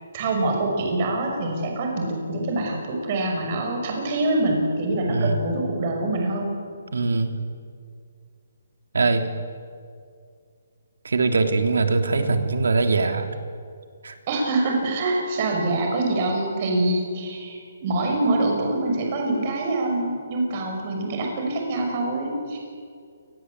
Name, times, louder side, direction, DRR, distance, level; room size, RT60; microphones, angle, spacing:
voice 1, 0.1-6.6 14.3-22.6, right 2 dB, 30° right, 1 dB, 6.1 m, -25 dB
voice 2, 5.1-5.4 6.9-7.4 8.9-9.3 11.0-13.3 14.0-14.1, right 3 dB, 85° right, 6 dB, 3.1 m, -22 dB
28.5 x 20.5 x 8.3 m, 2.2 s
hypercardioid pair, 170°, 0 cm